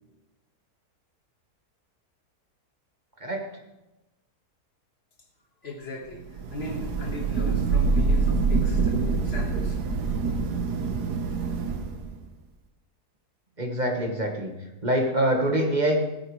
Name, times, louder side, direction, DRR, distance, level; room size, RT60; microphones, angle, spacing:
voice 1, 5.6-9.0 9.2-9.8, left 2 dB, 40° left, 2 dB, 1.8 m, -37 dB
Thunder / Rain, 6.4-12.1, right 4 dB, 90° right, 1.6 m, -25 dB
voice 2, 13.6-14.5 14.8-16.0, right 1 dB, 30° right, 2 dB, 1.5 m, -24 dB
17.5 x 9.8 x 3.2 m, 1.0 s
omnidirectional pair, 1.7 m